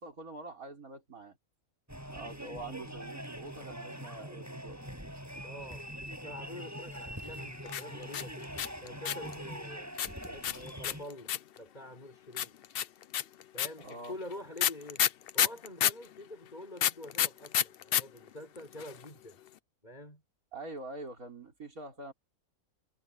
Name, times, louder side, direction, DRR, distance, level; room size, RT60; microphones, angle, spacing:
voice 1, 0.0-1.4 2.1-4.8 13.8-14.2 20.5-22.1, right 2 dB, 65° right, 4.8 m, -45 dB
sound 1, 1.9-11.0, equal, 10° right, 7.7 m, -43 dB
voice 2, 5.4-5.9 6.2-9.9 10.2-12.6 13.5-15.1 15.3-19.4 19.8-20.2, left 1 dB, 30° left, 5.7 m, -46 dB
sound 2, 7.7-9.3 10.0-11.6 12.4-16.1 16.8-18.0 18.3-18.4 18.6-19.0, left 10 dB, 65° left, 0.6 m, -29 dB
omnidirectional pair, 1.6 m